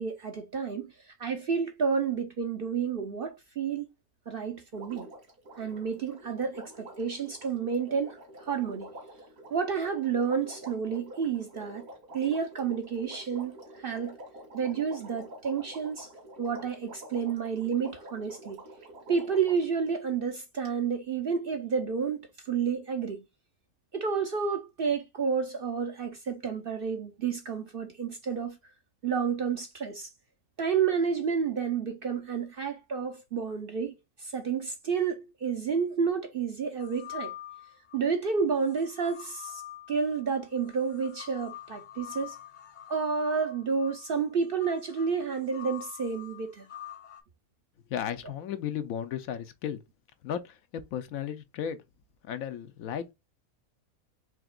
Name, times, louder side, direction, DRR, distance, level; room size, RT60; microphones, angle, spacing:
voice 1, 0.0-3.9 4.3-5.1 5.6-8.9 9.5-11.9 12.1-14.2 14.5-16.1 16.4-18.6 19.1-23.2 23.9-28.6 29.0-30.1 30.6-37.3 37.9-39.6 39.9-42.4 42.9-46.7, right 6 dB, 50° right, 0.7 m, -30 dB
Water, 4.7-19.7 20.7-20.8, right 1 dB, 70° right, 2.3 m, -48 dB
sound 1, 36.8-38.0 38.6-47.2, left 12 dB, 40° left, 0.8 m, -46 dB
voice 2, 47.9-49.8 50.2-51.8 52.2-53.1, left 9 dB, 75° left, 1.1 m, -34 dB
5.0 x 3.4 x 2.3 m
omnidirectional pair, 1.5 m